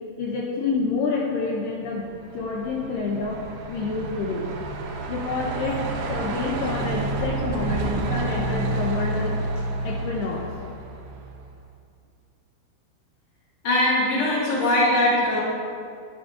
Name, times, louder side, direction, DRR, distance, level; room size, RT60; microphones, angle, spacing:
voice 1, 0.2-2.1 2.3-3.4 3.7-4.5 5.1-9.4 9.8-10.5, left 4 dB, 90° left, -2 dB, 1.9 m, -28 dB
Truck, 2.1-11.4, right 2 dB, 80° right, 2.0 m, -29 dB
voice 2, 13.6-15.4, left 1 dB, 50° left, -7 dB, 1.4 m, -21 dB
11.5 x 5.0 x 2.5 m, 2.3 s
omnidirectional pair, 4.7 m